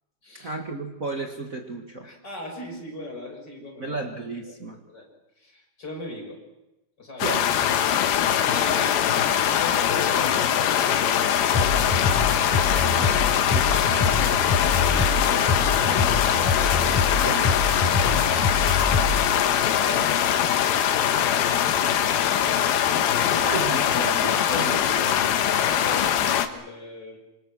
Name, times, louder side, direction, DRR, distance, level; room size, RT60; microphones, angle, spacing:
voice 1, 0.3-2.1 3.8-4.8 7.2-7.5 12.9-14.2 17.2-17.6 23.4-25.4, right 3 dB, 85° right, 2 dB, 0.7 m, -33 dB
voice 2, 2.0-4.0 4.4-4.6 4.9-5.1 5.4-6.4 7.0-7.3 8.3-12.1 14.7-16.5 21.9-23.6 25.5-27.2, left 2 dB, 25° left, 1 dB, 6.3 m, -39 dB
sound 1, 7.2-26.5, left 9 dB, 70° left, 3.0 m, -22 dB
sound 2, 11.5-19.3, left 4 dB, 50° left, 4.1 m, -25 dB
26.5 x 26.0 x 6.1 m, 0.96 s
omnidirectional pair, 4.7 m